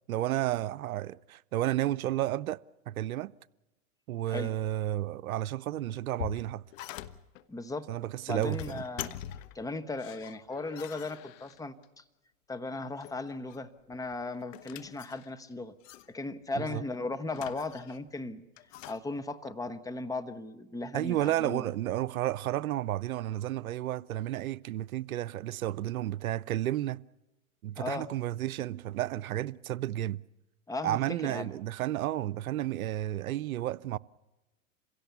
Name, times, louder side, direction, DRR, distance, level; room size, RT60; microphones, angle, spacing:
voice 1, 0.1-3.3 4.1-6.6 7.9-8.8 16.6-16.8 20.9-27.0 27.6-30.2 30.8-34.0, right 13 dB, 85° right, 0.7 m, -32 dB
sound 1, 5.8-7.4 8.2-9.6 10.0-11.8 12.8-13.6 13.9-15.5 15.8-16.1 17.3-18.1 18.6-19.0, left 12 dB, 65° left, 1.2 m, -44 dB
voice 2, 7.5-7.9 8.3-9.2 9.5-12.0 12.5-15.7 16.1-18.4 18.9-21.7 27.8-28.1 30.7-31.5, left 3 dB, 10° left, 1.1 m, -37 dB
27.0 x 17.0 x 7.0 m
hypercardioid pair, 115°, 42 cm